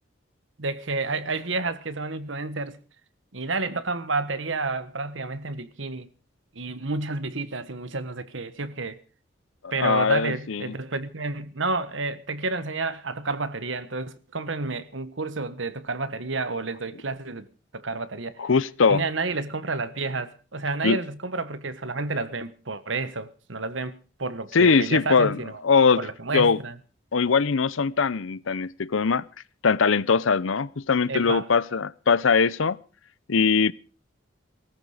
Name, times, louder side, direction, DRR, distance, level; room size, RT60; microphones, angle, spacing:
voice 1, 0.6-2.8 3.3-6.1 6.5-9.0 9.7-17.5 17.7-18.4 18.9-25.6 26.0-26.7 31.1-31.5, right 3 dB, 70° right, 1.3 m, -30 dB
voice 2, 9.6-10.7 18.4-19.0 20.8-21.0 24.5-26.0 26.3-26.6 27.1-29.2 29.6-32.8 33.3-33.7, left 5 dB, 80° left, 0.7 m, -21 dB
18.0 x 14.5 x 5.0 m
head